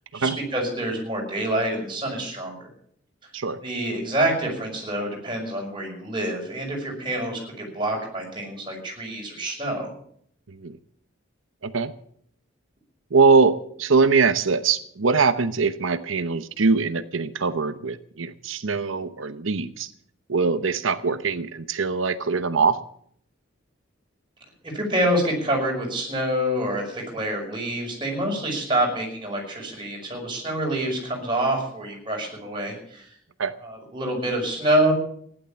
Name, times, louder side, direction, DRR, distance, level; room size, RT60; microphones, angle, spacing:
voice 1, 0.1-2.7 3.6-9.9 24.6-33.1 33.6-34.9, right 1 dB, 25° right, 0 dB, 5.7 m, -26 dB
voice 2, 10.5-10.8 11.6-11.9 13.1-19.9 20.3-22.8 33.4-33.5, right 4 dB, 70° right, 12 dB, 0.9 m, -22 dB
15.5 x 11.0 x 7.2 m, 0.65 s
head